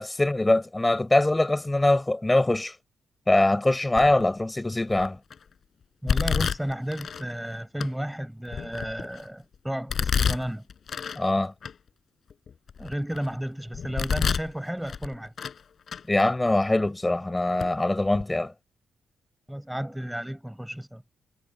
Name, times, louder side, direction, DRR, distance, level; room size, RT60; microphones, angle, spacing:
voice 1, 0.0-2.8 3.3-5.2 11.1-11.5 16.1-18.5, left 2 dB, 15° left, 4.6 m, -23 dB
Domestic sounds home sounds, 4.0-4.3 4.9-5.3 6.1-7.2 7.8-7.9 8.5-9.3 9.9-11.2 11.6-11.7 12.3-13.3 13.7-14.5 14.9-15.6 15.9-16.0 16.8-16.9 17.6-17.7 18.1-18.2, left 7 dB, 55° left, 5.8 m, -28 dB
voice 2, 6.0-10.6 12.8-15.3 19.5-21.0, equal, 5° right, 6.6 m, -33 dB
cardioid pair, 100°, 0 cm